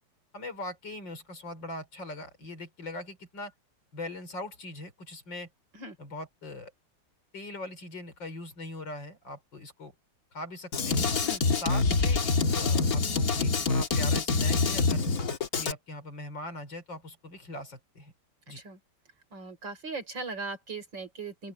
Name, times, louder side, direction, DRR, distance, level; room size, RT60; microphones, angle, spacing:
voice 1, 0.3-3.5 3.9-5.5 6.0-6.7 7.3-9.9 10.3-11.1 11.5-15.1 15.6-18.1 18.5-18.6, left 1 dB, 90° left, 5.4 m, -41 dB
Drum kit, 10.7-15.7, left 4 dB, 55° left, 2.1 m, -26 dB
voice 2, 19.3-21.5, right 3 dB, 90° right, 5.1 m, -39 dB
open air
omnidirectional pair, 2.0 m